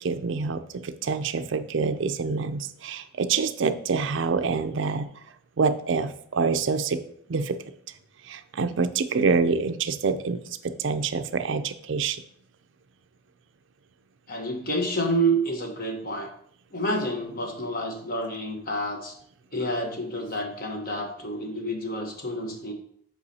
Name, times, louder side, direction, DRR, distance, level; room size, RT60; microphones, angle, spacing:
voice 1, 0.0-5.1 5.6-7.0 7.3-7.5 8.2-12.2, right 4 dB, 60° right, 9 dB, 0.4 m, -26 dB
voice 2, 14.3-16.3 16.7-19.1 19.5-22.7, right 1 dB, 40° left, 3 dB, 1.1 m, -29 dB
8.3 x 4.8 x 2.8 m, 0.66 s
head